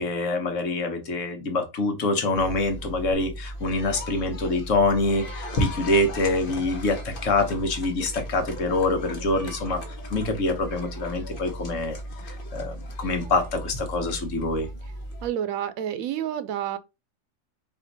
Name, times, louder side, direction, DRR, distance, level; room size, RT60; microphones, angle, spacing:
voice 1, 0.0-9.8 10.1-12.0 12.2-14.7, left 2 dB, 65° left, 1.3 m, -25 dB
sound 1, 2.4-15.3, equal, 45° left, 1.1 m, -35 dB
voice 2, 15.2-16.8, right 10 dB, 85° right, 1.0 m, -29 dB
4.4 x 2.8 x 3.9 m
omnidirectional pair, 1.4 m